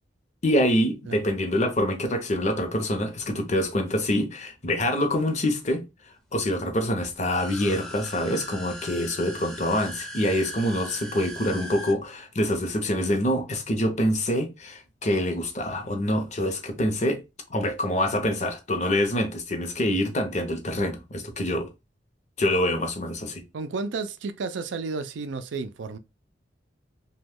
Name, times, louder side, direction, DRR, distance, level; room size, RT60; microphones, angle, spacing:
voice 1, 0.4-5.8 6.3-17.2 17.5-21.7 22.4-23.4, left 1 dB, 40° left, 0.7 m, -25 dB
sound 1, 7.2-11.9, equal, 5° left, 0.6 m, -39 dB
voice 2, 23.5-26.0, right 4 dB, 75° right, 0.4 m, -32 dB
3.0 x 2.2 x 3.5 m
head